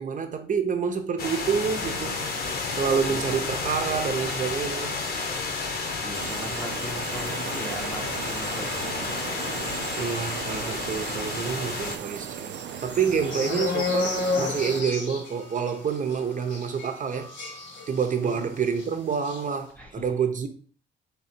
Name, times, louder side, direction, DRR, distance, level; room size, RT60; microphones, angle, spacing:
voice 1, 0.0-2.3 2.7-5.0 10.0-12.6 12.8-17.3 17.9-20.5, right 6 dB, 40° right, 0.7 m, -28 dB
sound 1, 1.2-12.0, left 4 dB, 50° left, 1.0 m, -31 dB
voice 2, 3.1-3.5 5.7-9.5 18.2-18.5 19.8-20.1, equal, 5° left, 0.8 m, -40 dB
sound 2, 6.1-14.8, right 10 dB, 65° right, 0.4 m, -37 dB
sound 3, 11.7-18.4 18.7-18.8 19.1-19.4, left 3 dB, 75° left, 1.5 m, -32 dB
4.0 x 2.7 x 4.3 m
cardioid pair, 90°, 20 cm